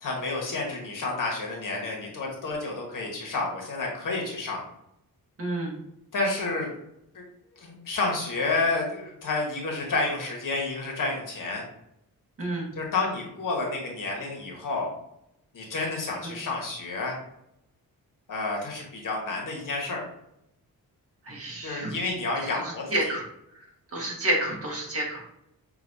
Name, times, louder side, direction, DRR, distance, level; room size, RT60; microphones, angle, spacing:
voice 1, 0.0-4.6 6.1-6.7 7.1-7.2 7.6-11.6 12.7-14.9 15.5-17.2 18.3-20.0 21.6-23.1, left 3 dB, 60° left, -1 dB, 1.4 m, -30 dB
voice 2, 5.4-5.7 12.4-12.7 21.3-21.9 22.9-23.2 23.9-25.2, right 1 dB, 40° right, -3 dB, 1.6 m, -29 dB
6.0 x 2.8 x 2.7 m, 0.80 s
wide cardioid pair, 115°, 37 cm